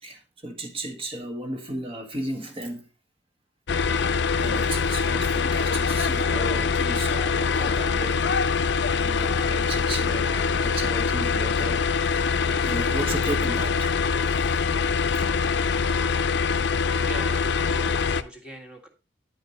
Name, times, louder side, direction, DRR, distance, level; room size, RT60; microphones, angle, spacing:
voice 1, 0.0-2.9 4.4-8.3 8.5-14.0 15.1-15.2, right 1 dB, 30° right, 1.5 m, -35 dB
sound 1, 3.7-18.2, left 5 dB, 65° left, 0.5 m, -24 dB
voice 2, 17.1-18.9, right 1 dB, 5° right, 1.8 m, -41 dB
10.5 x 5.3 x 3.9 m
head